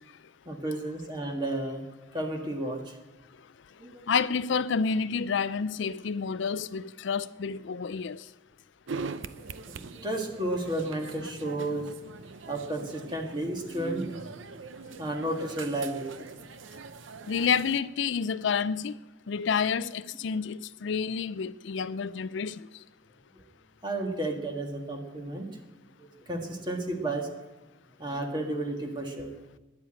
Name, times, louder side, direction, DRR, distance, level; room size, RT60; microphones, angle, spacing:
voice 1, 0.5-1.8 2.1-3.0 3.8-4.0 9.4-11.9 12.5-14.4 15.0-16.3 23.8-25.6 26.0-27.3 28.0-29.4, right 1 dB, 25° right, 1.6 m, -32 dB
voice 2, 4.1-8.2 17.3-18.9 19.3-22.7, left 6 dB, 75° left, 0.4 m, -29 dB
sound 1, 8.9-17.8, right 4 dB, 80° right, 0.7 m, -42 dB
13.0 x 11.0 x 8.8 m
head